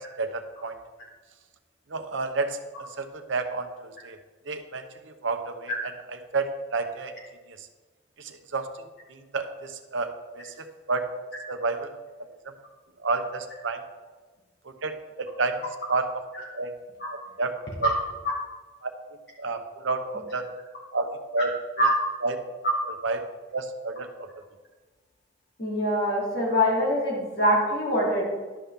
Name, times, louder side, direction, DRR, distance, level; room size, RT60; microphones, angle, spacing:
voice 1, 0.2-0.7 1.9-2.6 3.0-4.2 4.5-4.8 5.2-7.1 8.2-8.7 9.3-10.5 10.9-11.0 11.5-11.9 13.0-13.8 14.8-15.6 15.9-16.1 16.5-16.7 17.1-17.5 17.8-17.9 18.8-18.9 19.4-20.4 20.9-21.5 22.2-22.4 23.0-23.2 23.5-24.1, right 3 dB, 80° right, 7 dB, 0.8 m, -30 dB
voice 2, 25.6-28.2, equal, 55° left, -4 dB, 2.6 m, -23 dB
11.5 x 5.7 x 3.6 m, 1.3 s
head